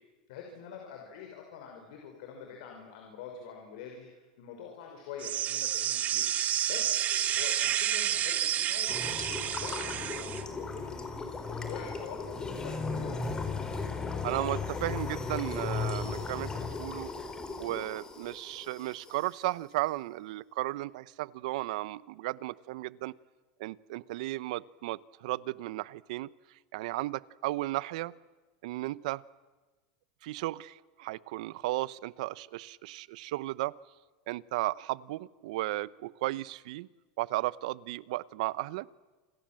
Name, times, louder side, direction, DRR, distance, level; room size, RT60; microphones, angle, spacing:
voice 1, 0.3-6.3 6.7-6.8 7.1-9.0 9.3-13.1, left 7 dB, 75° left, 2 dB, 5.9 m, -46 dB
sound 1, 5.2-10.4, right 11 dB, 40° right, 1.4 m, -30 dB
sound 2, 8.9-19.3, left 4 dB, 20° left, 4.0 m, -36 dB
voice 2, 14.2-17.1 17.6-23.1 23.6-26.3 26.7-28.1 28.6-29.2 30.2-33.7 34.3-36.9 37.2-38.9, right 18 dB, 75° right, 19 dB, 0.8 m, -35 dB
29.0 x 26.0 x 7.7 m, 1.3 s
supercardioid pair, 115°, 4 cm